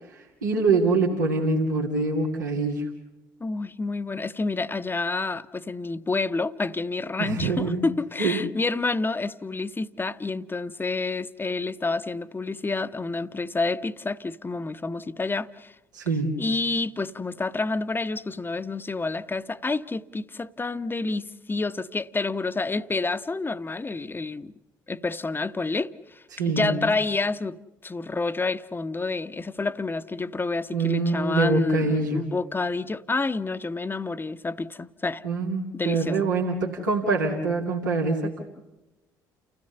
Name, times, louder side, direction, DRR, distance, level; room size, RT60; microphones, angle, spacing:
voice 1, 0.1-2.9 7.2-7.8 8.2-8.4 15.9-16.4 26.3-26.8 30.7-32.2 35.2-38.4, right 3 dB, 90° right, 2.4 m, -25 dB
voice 2, 3.4-15.7 16.4-24.5 24.9-35.2 35.7-36.2, left 3 dB, 20° left, 1.0 m, -29 dB
29.5 x 16.0 x 6.9 m
hypercardioid pair, 50°, 10 cm